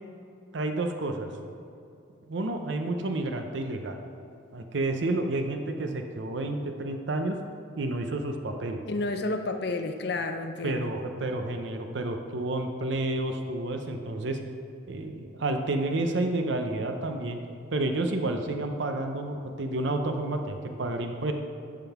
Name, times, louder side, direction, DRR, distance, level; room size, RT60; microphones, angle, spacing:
voice 1, 0.5-1.3 2.3-4.0 4.5-7.4 7.8-8.8 10.6-14.4 14.9-17.4 17.7-21.3, right 2 dB, 65° right, 5 dB, 0.6 m, -30 dB
voice 2, 8.9-10.9, left 2 dB, 55° left, 6 dB, 0.6 m, -30 dB
10.5 x 3.8 x 5.8 m, 2.6 s
head